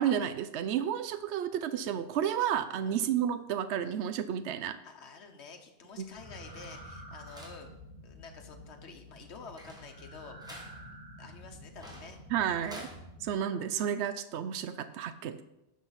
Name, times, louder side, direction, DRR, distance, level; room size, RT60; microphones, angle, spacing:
voice 1, 0.0-4.8 12.3-12.9 13.2-15.4, right 9 dB, 90° right, 11 dB, 0.9 m, -31 dB
voice 2, 2.8-3.2 4.8-7.7 8.0-10.4 11.2-12.2 12.7-12.9, left 5 dB, 85° left, 4 dB, 1.2 m, -49 dB
sound 1, 5.9-13.0, left 1 dB, 5° right, 1.5 m, -52 dB
sound 2, 6.1-13.3, equal, 15° left, 3.7 m, -49 dB
10.5 x 6.2 x 4.0 m, 0.91 s
omnidirectional pair, 1.1 m